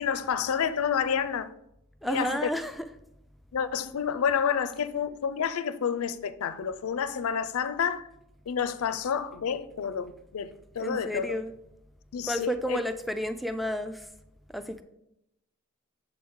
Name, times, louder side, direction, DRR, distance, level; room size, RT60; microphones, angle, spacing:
voice 1, 0.0-1.5 2.0-2.5 3.5-8.1 8.5-11.4 12.1-12.8, left 7 dB, 75° left, 0.4 m, -29 dB
voice 2, 2.0-2.9 10.8-11.5 12.3-14.1 14.5-14.8, equal, ahead, 0.3 m, -31 dB
6.9 x 4.5 x 3.6 m
head